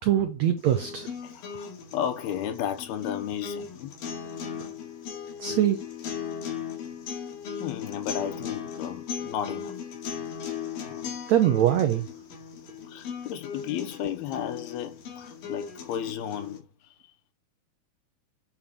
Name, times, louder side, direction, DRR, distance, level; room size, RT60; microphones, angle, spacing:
voice 1, 0.0-1.1 5.4-5.8 11.3-12.1, right 11 dB, 85° right, 1.5 m, -23 dB
sound 1, 0.6-16.6, left 7 dB, 65° left, 3.7 m, -38 dB
voice 2, 1.2-3.9 7.6-9.8 10.7-11.2 12.8-17.0, left 9 dB, 90° left, 3.1 m, -34 dB
9.3 x 5.0 x 6.9 m
omnidirectional pair, 4.3 m